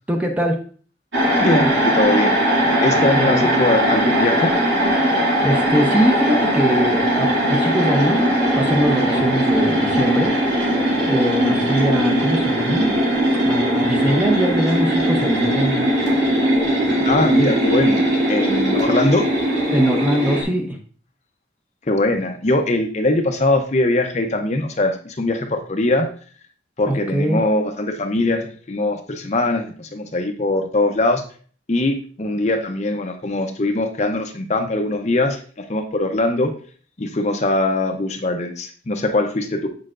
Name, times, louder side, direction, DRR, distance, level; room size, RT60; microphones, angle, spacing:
voice 1, 0.1-0.6 3.2-3.5 5.4-8.2 8.6-10.3 11.1-13.0 13.4-15.9 19.7-20.8 26.9-27.4, equal, 10° right, 2 dB, 0.7 m, -21 dB
sound 1, 1.1-20.4, equal, 70° right, 2.5 m, -19 dB
voice 2, 1.4-2.4 2.8-4.5 17.0-18.0 18.3-19.3 21.9-26.1 26.8-31.2 31.7-35.4 35.7-36.5 37.0-39.7, left 2 dB, 35° left, 5 dB, 0.6 m, -21 dB
7.4 x 6.5 x 2.5 m, 0.44 s
head